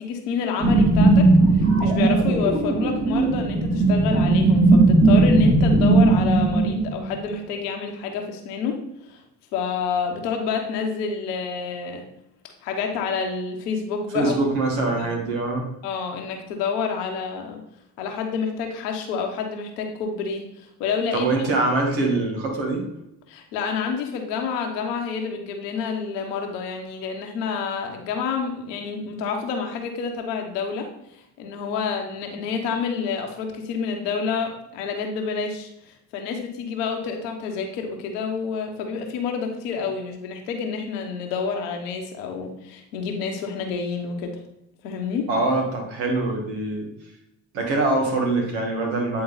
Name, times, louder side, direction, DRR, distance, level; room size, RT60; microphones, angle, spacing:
voice 1, 0.0-8.8 9.1-9.2 9.5-12.1 12.6-14.4 15.0-15.1 15.8-17.6 18.0-21.3 22.1-22.2 23.3-44.4 44.8-45.3, left 5 dB, 85° left, 3 dB, 1.1 m, -28 dB
sound 1, 0.6-7.3, right 2 dB, 35° right, 2.4 m, -17 dB
voice 2, 14.1-15.7 21.1-22.8 45.3-46.9 47.5-49.2, right 2 dB, 80° right, 0 dB, 1.7 m, -23 dB
9.0 x 3.9 x 3.9 m, 0.85 s
hypercardioid pair, 45°, 45 cm